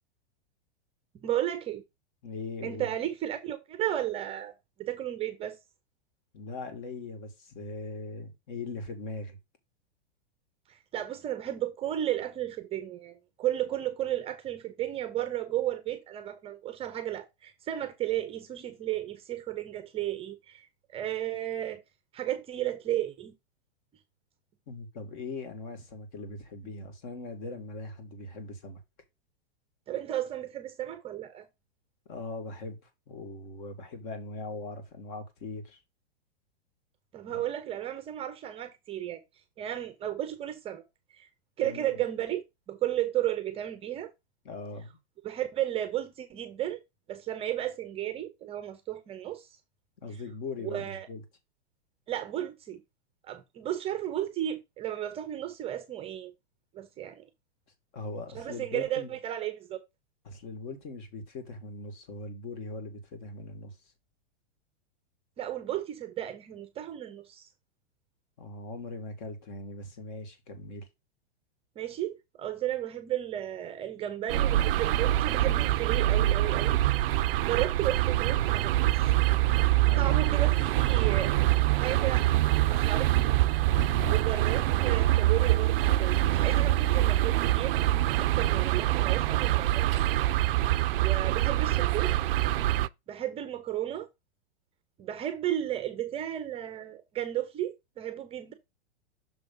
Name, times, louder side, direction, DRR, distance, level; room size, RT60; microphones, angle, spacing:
voice 1, 1.1-1.8 2.6-4.5 4.8-5.6 10.7-21.8 22.1-23.3 29.9-31.5 37.1-39.2 39.6-40.8 41.1-41.3 41.6-44.1 45.2-46.8 47.1-49.5 50.6-51.1 52.1-52.8 53.3-56.3 56.7-57.2 58.3-59.8 65.4-67.5 71.8-76.8 77.2-79.1 80.0-81.3 81.7-82.3 82.7-83.4 84.1-87.8 88.1-90.0 91.0-92.1 93.1-94.1 95.0-98.5, right 12 dB, 20° right, 0.6 m, -33 dB
voice 2, 2.2-2.9 6.3-9.4 24.7-28.8 32.1-35.8 37.3-37.4 41.6-41.9 44.4-45.0 50.0-51.2 57.9-59.1 60.3-63.8 68.4-70.9 79.9-80.2 83.7-84.2, left 3 dB, 45° left, 2.1 m, -40 dB
sound 1, 74.3-92.9, right 15 dB, 60° right, 0.5 m, -25 dB
6.3 x 3.4 x 5.4 m
hypercardioid pair, 145°, 32 cm